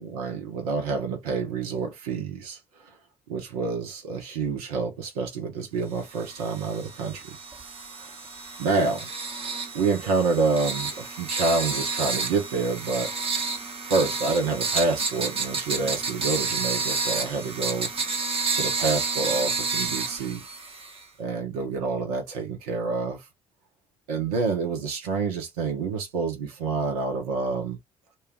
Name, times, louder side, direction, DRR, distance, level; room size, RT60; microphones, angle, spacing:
voice 1, 0.0-2.6 3.3-7.4 8.6-9.1 9.5-13.1 13.9-17.9 18.5-20.4 21.2-23.2 24.1-27.8, right 4 dB, 75° right, 0.8 m, -28 dB
sound 1, 6.1-21.0, right 4 dB, 30° right, 0.9 m, -30 dB
2.7 x 2.3 x 3.3 m
figure-of-eight pair, 45°, 19 cm